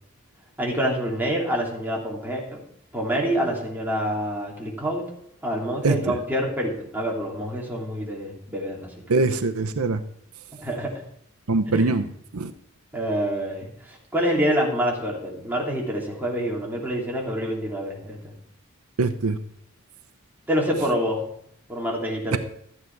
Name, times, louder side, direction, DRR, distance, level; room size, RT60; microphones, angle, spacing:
voice 1, 0.6-2.6 2.9-5.0 5.4-8.9 10.5-10.9 11.7-12.0 12.9-18.3 20.5-21.2 21.7-22.4, equal, 10° right, -2 dB, 3.0 m, -27 dB
voice 2, 9.1-10.0 11.5-12.0 12.3-12.5 19.0-19.4 22.3-22.4, right 3 dB, 90° right, 10 dB, 0.8 m, -22 dB
13.0 x 9.4 x 4.7 m, 0.68 s
head